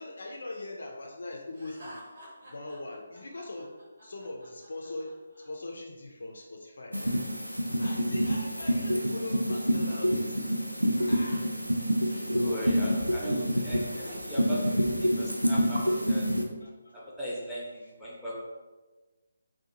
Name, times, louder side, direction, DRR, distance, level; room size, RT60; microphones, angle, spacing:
voice 1, 0.0-2.0 2.5-3.8 4.0-7.1 7.8-10.5 11.1-11.6 12.1-12.5 14.4-14.6 15.6-16.0 16.6-16.9 17.3-17.4 17.8-17.9, left 2 dB, 55° left, 1 dB, 0.3 m, -41 dB
Laughter, 1.5-5.5, equal, 50° right, 0.8 m, -50 dB
sound 1, 6.9-16.4, equal, 90° right, 0.3 m, -27 dB
voice 2, 12.3-16.3 16.9-18.3, equal, ahead, -8 dB, 0.6 m, -38 dB
2.7 x 2.1 x 2.7 m, 1.2 s
figure-of-eight pair, 145°, 0 cm